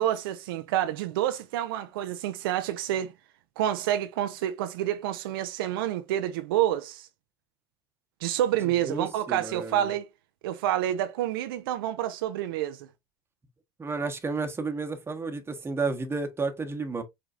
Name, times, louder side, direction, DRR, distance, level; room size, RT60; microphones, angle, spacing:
voice 1, 0.0-3.1 3.6-7.1 8.2-10.1 10.4-12.9, right 12 dB, 80° right, 0.5 m, -28 dB
voice 2, 8.8-9.9 13.8-17.0, right 4 dB, 20° right, 1.1 m, -32 dB
5.0 x 3.5 x 2.5 m
hypercardioid pair, 85°, 12 cm